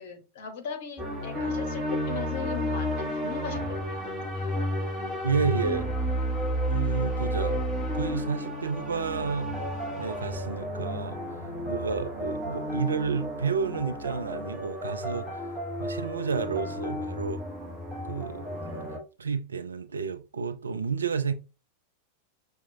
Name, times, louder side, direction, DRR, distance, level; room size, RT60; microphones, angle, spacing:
voice 1, 0.0-4.0 4.3-4.6, left 6 dB, 50° left, 0.9 m, -38 dB
sound 1, 1.0-19.0, equal, 5° right, 1.2 m, -32 dB
voice 2, 5.2-5.9 6.7-7.7 7.9-9.6 10.0-15.5 15.8-17.4 18.0-18.5 19.2-21.3, right 5 dB, 70° right, 0.4 m, -31 dB
5.8 x 2.3 x 2.6 m
figure-of-eight pair, 90°, 0 cm